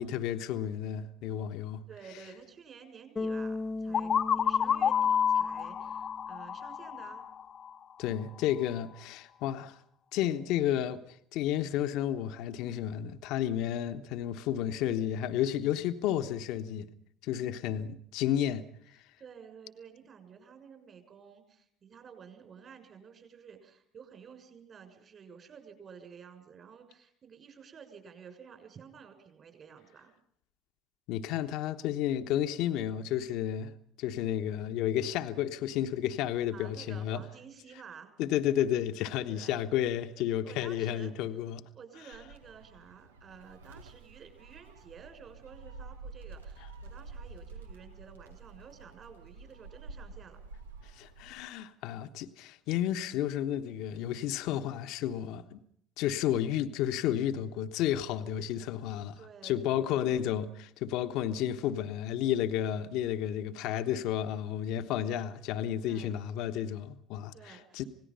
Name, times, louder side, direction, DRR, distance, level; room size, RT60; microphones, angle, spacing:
voice 1, 0.0-1.8 8.0-9.8 10.1-16.9 17.2-18.7 31.1-33.7 34.0-37.2 38.2-41.6 51.0-55.6 56.0-59.2 59.4-67.8, left 11 dB, 65° left, 1.2 m, -32 dB
voice 2, 1.9-7.2 19.2-30.1 36.5-38.1 39.3-39.5 40.4-41.1 41.7-50.4 59.1-60.2 65.8-66.2 67.3-67.9, right 6 dB, 45° right, 6.5 m, -52 dB
Bass guitar, 3.2-6.3, left 2 dB, 25° left, 1.3 m, -38 dB
sound 1, 3.9-7.7, left 8 dB, 45° left, 1.0 m, -29 dB
Gull seagull, 42.1-51.5, right 4 dB, 85° right, 1.1 m, -49 dB
28.0 x 18.0 x 5.6 m
hypercardioid pair, 65°, 0 cm